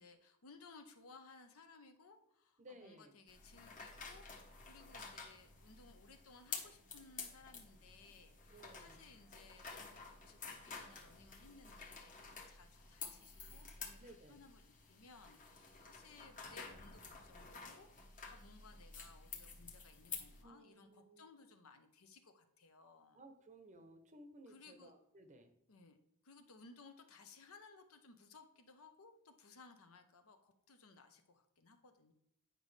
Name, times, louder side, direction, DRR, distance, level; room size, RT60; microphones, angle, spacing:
voice 1, 0.0-17.9 18.1-23.2 24.5-24.9 25.7-32.1, left 4 dB, 75° left, 7 dB, 0.8 m, -61 dB
voice 2, 2.6-3.1 8.5-9.0 14.0-14.4 20.4-21.3 23.1-25.6, right 1 dB, 35° right, 8 dB, 0.7 m, -59 dB
sound 1, 3.3-20.4, left 5 dB, 40° left, 1.1 m, -51 dB
9.1 x 5.2 x 3.3 m, 0.77 s
head